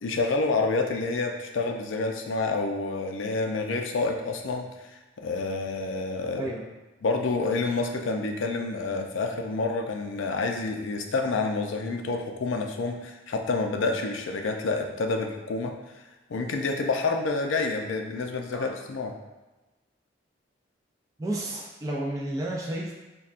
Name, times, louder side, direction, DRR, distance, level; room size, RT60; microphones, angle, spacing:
voice 1, 0.0-6.5 7.0-15.7 16.3-19.1, left 3 dB, 80° left, 3 dB, 0.4 m, -28 dB
voice 2, 21.2-22.9, right 1 dB, 15° right, -4 dB, 0.3 m, -31 dB
5.4 x 2.2 x 2.4 m, 1.1 s
head